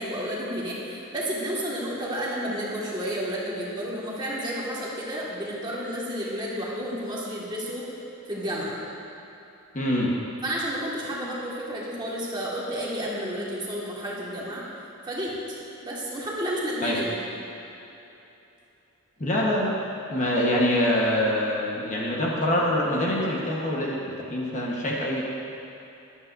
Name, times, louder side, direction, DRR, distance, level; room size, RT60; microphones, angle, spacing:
voice 1, 0.0-7.9 8.3-8.8 10.4-14.7 15.0-17.2, equal, 20° right, -6 dB, 1.8 m, -31 dB
voice 2, 9.7-10.1 16.8-17.0 19.2-19.8 20.1-25.3, left 1 dB, 35° left, -3 dB, 1.2 m, -25 dB
14.0 x 11.0 x 2.7 m, 3.0 s
head